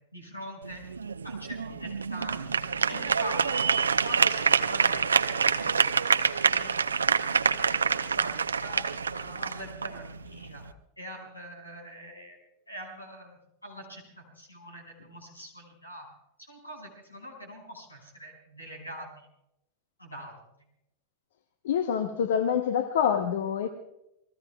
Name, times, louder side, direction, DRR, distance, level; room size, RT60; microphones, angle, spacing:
voice 1, 0.1-0.8 1.2-2.5 2.9-3.7 4.0-5.8 6.2-7.1 7.9-8.3 8.6-10.6 11.0-12.4 12.7-14.0 14.3-16.1 16.4-19.3 20.0-20.4, equal, 85° left, 5.7 m, -43 dB
sound 1, 0.6-10.7, right 5 dB, 75° right, 0.7 m, -27 dB
voice 2, 21.6-23.7, left 8 dB, 60° left, 0.9 m, -26 dB
29.0 x 20.5 x 2.3 m
figure-of-eight pair, 90°, 0 cm